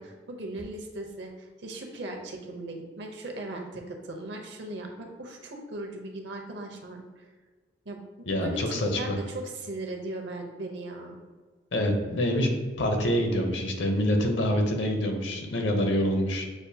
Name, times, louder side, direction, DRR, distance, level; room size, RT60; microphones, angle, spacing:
voice 1, 0.0-7.3 7.8-11.2, right 2 dB, 75° right, 2 dB, 0.7 m, -38 dB
voice 2, 8.3-9.2 11.7-12.5 12.8-16.4, equal, 85° left, 3 dB, 0.7 m, -26 dB
6.9 x 2.7 x 2.3 m, 1.4 s
head